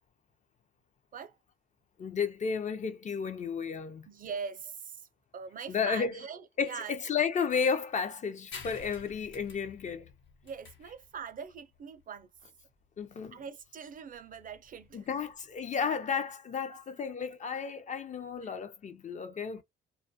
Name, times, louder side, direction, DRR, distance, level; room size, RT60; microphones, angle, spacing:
voice 1, 2.0-4.1 5.7-6.1 6.6-10.1 13.0-13.4 14.9-19.6, left 6 dB, 40° left, 0.4 m, -33 dB
voice 2, 4.1-5.1 5.3-6.9 10.4-12.3 13.3-15.1 16.7-16.8 18.4-18.5, right 6 dB, 45° right, 0.4 m, -42 dB
sound 1, 8.5-15.6, left 5 dB, 70° left, 0.9 m, -51 dB
2.3 x 2.1 x 2.6 m
cardioid pair, 90°, 20 cm